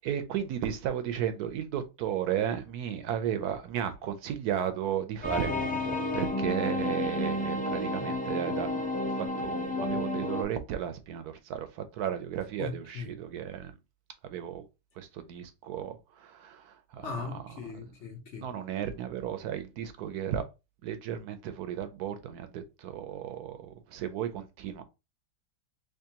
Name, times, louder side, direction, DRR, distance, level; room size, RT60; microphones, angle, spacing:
voice 1, 0.0-8.9 9.2-13.7 14.2-14.6 15.0-17.1 18.4-20.4 20.8-24.8, right 9 dB, 75° right, 1.0 m, -34 dB
sound 1, 5.2-10.4, left 2 dB, 10° left, 0.3 m, -31 dB
voice 2, 12.6-13.1 17.0-18.5, left 5 dB, 55° left, 1.0 m, -39 dB
3.5 x 3.2 x 2.8 m
omnidirectional pair, 1.8 m